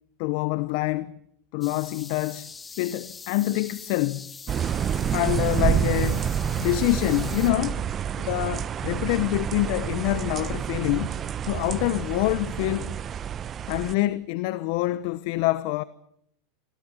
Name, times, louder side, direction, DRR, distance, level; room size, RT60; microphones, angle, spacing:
voice 1, 0.2-1.2 1.5-2.5 2.8-4.3 5.1-7.8 8.2-11.1 11.4-13.0 13.7-15.8, left 18 dB, 65° left, 0.9 m, -26 dB
sound 1, 1.6-7.5, left 5 dB, 20° left, 1.6 m, -43 dB
sound 2, 4.5-13.9, right 9 dB, 35° right, 1.0 m, -28 dB
25.5 x 17.5 x 8.9 m
hypercardioid pair, 95°, 0 cm